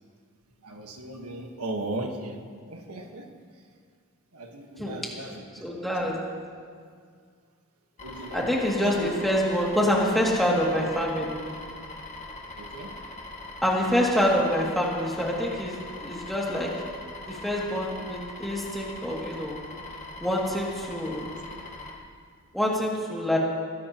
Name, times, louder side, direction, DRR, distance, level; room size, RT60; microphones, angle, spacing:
voice 1, 0.6-3.3 4.3-6.1 8.0-9.1 12.5-12.9, right 1 dB, 80° right, 3 dB, 1.5 m, -37 dB
voice 2, 5.6-6.2 8.3-11.4 13.6-16.8 17.3-19.6 20.2-21.3 22.5-23.4, equal, ahead, -4 dB, 2.4 m, -26 dB
sound 1, 8.0-21.9, left 2 dB, 30° left, 2.0 m, -41 dB
21.5 x 16.5 x 3.0 m, 2.1 s
head